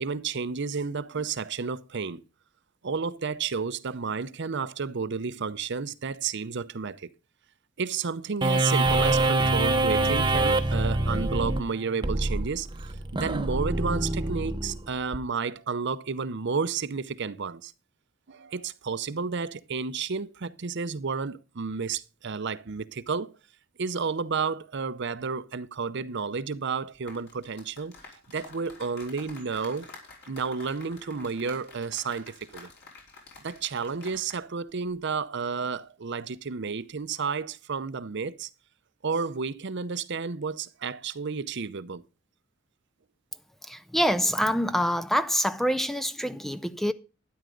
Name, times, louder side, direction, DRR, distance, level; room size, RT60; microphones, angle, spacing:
voice 1, 0.0-2.2 2.8-7.1 7.8-12.7 13.1-17.7 18.3-23.3 23.8-27.9 28.3-29.9 30.3-32.7 33.4-38.5 39.0-42.0, right 5 dB, 60° right, 0.7 m, -31 dB
sound 1, 8.4-15.2, right 2 dB, 25° right, 0.8 m, -25 dB
sound 2, 26.9-34.4 34.7-34.9, left 3 dB, 55° left, 4.9 m, -49 dB
voice 2, 43.6-46.9, equal, ahead, 0.5 m, -26 dB
12.5 x 10.0 x 3.9 m
head